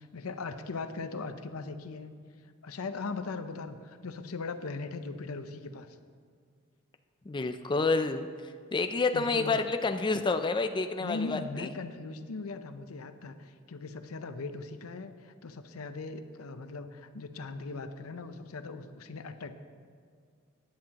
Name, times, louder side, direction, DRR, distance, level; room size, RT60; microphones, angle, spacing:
voice 1, 0.0-2.1 2.6-6.0 9.1-9.6 11.0-19.5, left 3 dB, 85° left, 9 dB, 0.7 m, -39 dB
voice 2, 7.3-11.7, left 3 dB, 20° left, 8 dB, 0.4 m, -29 dB
16.0 x 10.5 x 2.9 m, 2.2 s
head